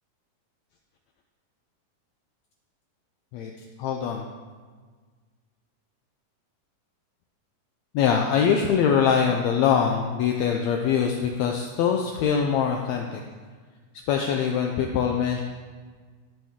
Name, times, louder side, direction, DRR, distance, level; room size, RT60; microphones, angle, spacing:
voice 1, 3.8-4.2 7.9-13.2 14.1-15.4, left 7 dB, 85° left, 2 dB, 1.5 m, -23 dB
13.0 x 5.4 x 3.6 m, 1.5 s
omnidirectional pair, 3.7 m